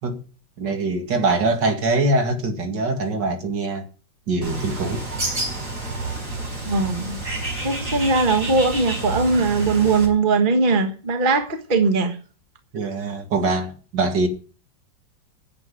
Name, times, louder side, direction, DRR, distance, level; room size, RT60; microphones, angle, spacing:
voice 1, 0.6-3.9 4.3-5.1 12.7-14.3, right 2 dB, 65° right, 2.7 m, -23 dB
Bird, 4.4-10.1, right 2 dB, 45° right, 5.2 m, -29 dB
voice 2, 6.7-7.2 7.6-12.2, right 3 dB, 30° right, 1.5 m, -20 dB
10.0 x 7.8 x 9.2 m
omnidirectional pair, 2.0 m